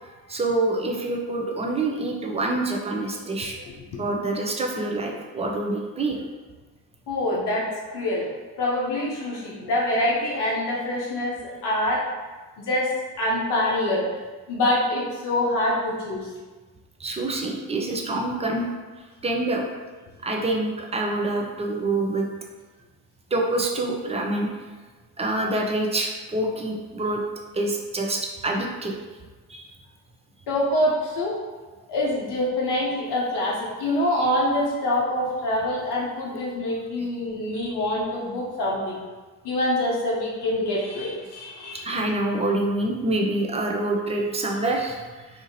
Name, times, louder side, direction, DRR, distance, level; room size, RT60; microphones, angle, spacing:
voice 1, 0.0-3.7 4.0-6.2 9.6-9.7 17.0-18.7 19.0-19.7 20.2-22.3 23.3-24.5 25.2-27.2 27.5-29.0 29.5-29.7 37.0-37.1 41.7-45.4, right 2 dB, 15° right, 0 dB, 0.4 m, -26 dB
voice 2, 7.1-8.3 8.6-12.0 12.6-14.1 14.5-16.3 30.5-31.3 31.9-39.0 39.4-41.9, left 1 dB, 55° left, -4 dB, 0.8 m, -25 dB
2.8 x 2.5 x 2.7 m, 1.3 s
hypercardioid pair, 45°, 47 cm